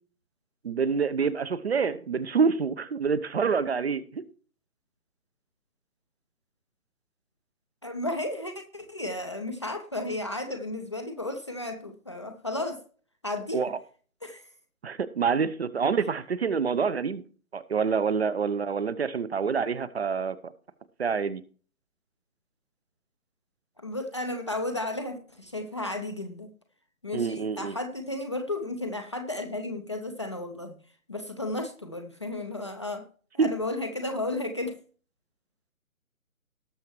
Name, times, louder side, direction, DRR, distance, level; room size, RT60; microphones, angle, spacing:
voice 1, 0.6-4.2 13.5-13.7 14.8-17.2 17.5-20.5 21.0-21.4 27.1-27.7 33.4-33.5, right 5 dB, 45° right, 0.9 m, -27 dB
voice 2, 7.8-12.8 13.2-13.6 14.2-14.5 23.8-26.5 27.0-30.8 31.1-33.1 33.3-34.8, left 2 dB, 20° left, 0.6 m, -33 dB
18.5 x 6.7 x 3.1 m
figure-of-eight pair, 140°, 43 cm